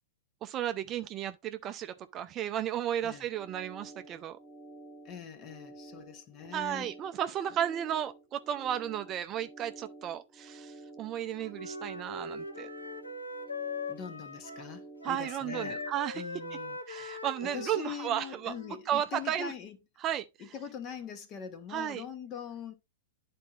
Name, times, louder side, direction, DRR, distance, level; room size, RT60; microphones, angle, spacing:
voice 1, 0.4-4.4 6.5-12.7 15.0-16.2 16.9-18.5 18.9-19.5 20.0-20.3 21.7-22.0, right 10 dB, 30° right, 0.5 m, -34 dB
sound 1, 3.1-15.9, right 2 dB, ahead, 1.3 m, -51 dB
voice 2, 5.0-6.9 13.9-15.8 16.1-19.8 20.4-22.7, left 8 dB, 35° left, 1.3 m, -43 dB
Wind instrument woodwind instrument, 11.1-14.8 15.0-18.9, left 3 dB, 90° left, 1.2 m, -41 dB
11.5 x 4.3 x 2.5 m
figure-of-eight pair, 105°, 0 cm